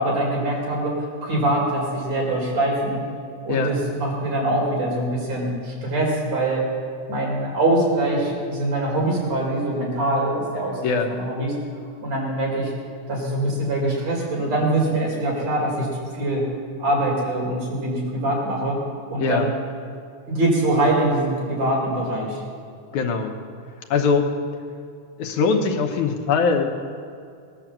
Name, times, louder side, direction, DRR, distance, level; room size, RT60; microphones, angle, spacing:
voice 1, 0.0-3.0 3.4-6.6 7.1-11.5 12.0-12.7 13.1-16.4 16.8-18.8 19.1-19.5 20.3-22.4, right 1 dB, 55° right, -3 dB, 5.1 m, -23 dB
voice 2, 22.9-23.4 23.9-24.3 25.2-26.7, left 5 dB, 70° left, 3 dB, 2.5 m, -21 dB
18.5 x 10.0 x 7.5 m, 2.4 s
omnidirectional pair, 3.7 m